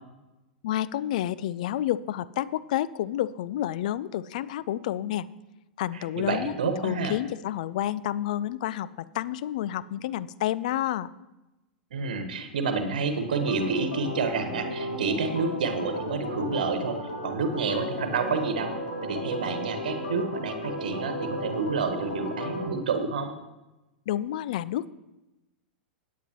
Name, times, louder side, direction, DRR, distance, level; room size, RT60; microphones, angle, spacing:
voice 1, 0.6-5.3 5.8-6.6 6.8-11.1 24.1-24.9, left 12 dB, 55° left, 18 dB, 0.4 m, -29 dB
voice 2, 5.9-7.2 11.9-17.0 17.2-18.7 19.0-23.3, right 4 dB, 65° right, 7 dB, 1.3 m, -29 dB
Organ, 13.3-22.7, equal, 70° left, 3.7 m, -34 dB
16.5 x 9.3 x 3.0 m, 1.0 s
figure-of-eight pair, 95°, 5 cm